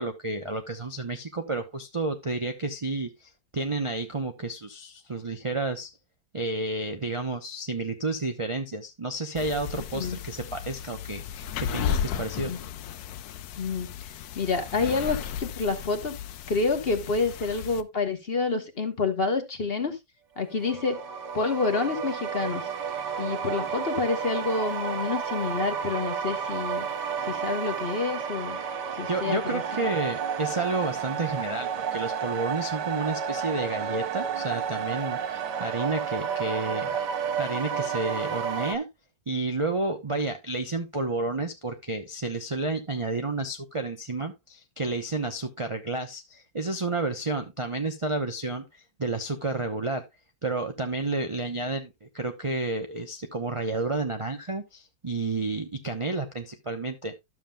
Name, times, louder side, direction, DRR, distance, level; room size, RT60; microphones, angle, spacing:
voice 1, 0.0-5.9 6.3-12.5 29.1-37.0 37.4-38.9 39.3-50.0 50.4-57.1, right 3 dB, 30° right, 0.6 m, -31 dB
sound 1, 9.4-17.8, left 8 dB, 70° left, 1.1 m, -34 dB
voice 2, 13.6-13.9 14.4-16.2 16.5-20.0 20.4-21.0 21.3-22.7 23.2-26.9 27.2-28.6 29.0-29.8, left 4 dB, 40° left, 1.1 m, -28 dB
sound 2, 20.5-38.8, right 7 dB, 80° right, 1.6 m, -31 dB
12.0 x 7.3 x 2.3 m
omnidirectional pair, 1.8 m